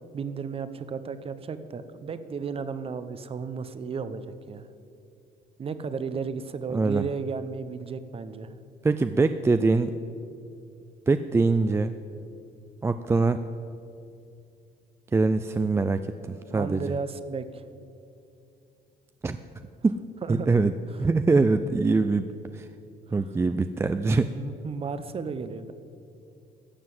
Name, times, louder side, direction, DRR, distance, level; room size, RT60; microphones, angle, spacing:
voice 1, 0.1-4.7 5.6-8.5 16.5-17.6 20.2-20.6 24.3-25.7, right 5 dB, 35° right, 12 dB, 0.8 m, -34 dB
voice 2, 6.7-7.0 8.8-9.9 11.1-11.9 12.8-13.4 15.1-16.8 19.2-19.4 19.8-20.0 20.3-20.7 21.0-22.7 23.1-24.3, right 3 dB, 15° right, 9 dB, 0.4 m, -23 dB
13.0 x 7.4 x 7.8 m, 2.6 s
cardioid pair, 110°, 17 cm